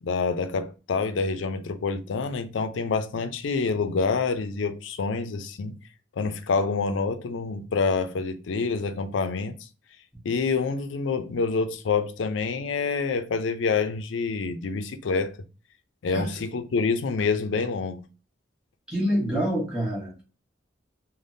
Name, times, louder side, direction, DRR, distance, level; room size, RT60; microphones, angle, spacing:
voice 1, 0.0-5.8 6.2-9.5 10.2-15.3 16.0-18.0, left 4 dB, 80° left, 0.4 m, -27 dB
voice 2, 18.9-20.2, equal, 5° right, 1.0 m, -26 dB
3.4 x 2.1 x 2.6 m
head